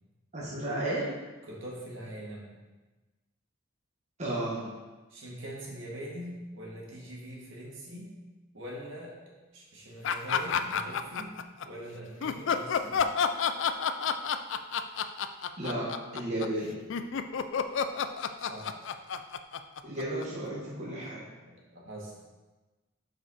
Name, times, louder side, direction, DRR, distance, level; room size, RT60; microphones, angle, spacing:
voice 1, 0.3-1.1 4.2-4.7 15.6-16.8 19.8-21.2, right 1 dB, 35° right, -6 dB, 1.3 m, -33 dB
voice 2, 1.5-2.6 5.1-8.1 8.5-9.2 9.5-11.3 11.6-13.1 18.4-18.9 21.4-22.1, equal, 70° right, -4 dB, 1.9 m, -43 dB
sound 1, 10.0-11.7 12.2-20.5, left 6 dB, 65° left, 0.4 m, -30 dB
7.3 x 4.9 x 4.2 m, 1.2 s
head